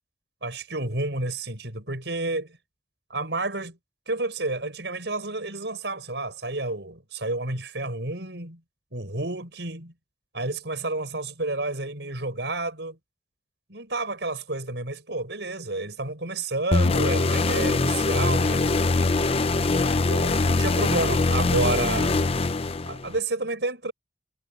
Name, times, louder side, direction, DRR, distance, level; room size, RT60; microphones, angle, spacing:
voice 1, 0.4-2.6 3.1-3.8 4.1-8.6 8.9-9.9 10.3-13.0 13.7-18.7 20.1-22.2 22.9-23.9, right 2 dB, 70° right, 5.9 m, -30 dB
sound 1, 16.7-23.2, left 3 dB, 35° left, 0.6 m, -23 dB
head